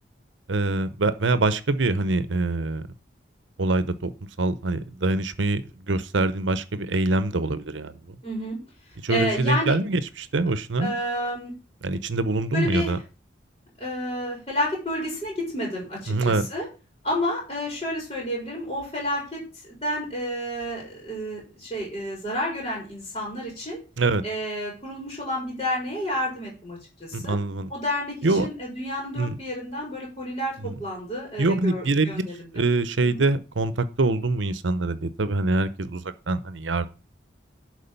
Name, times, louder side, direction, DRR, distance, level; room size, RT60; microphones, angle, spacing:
voice 1, 0.5-2.8 3.6-8.0 9.0-11.0 11.8-13.0 16.1-16.4 24.0-24.2 27.1-27.7 28.2-28.5 29.2-29.4 30.6-30.8 31.4-32.3 32.5-36.9, right 2 dB, 90° right, 14 dB, 0.8 m, -24 dB
voice 2, 8.2-8.6 9.1-9.7 10.8-11.5 12.5-12.9 13.8-16.7 17.0-19.4 19.8-23.8 24.2-27.4 27.7-32.6 33.0-33.2, equal, 25° left, -3 dB, 4.7 m, -30 dB
11.5 x 4.8 x 5.4 m, 0.32 s
head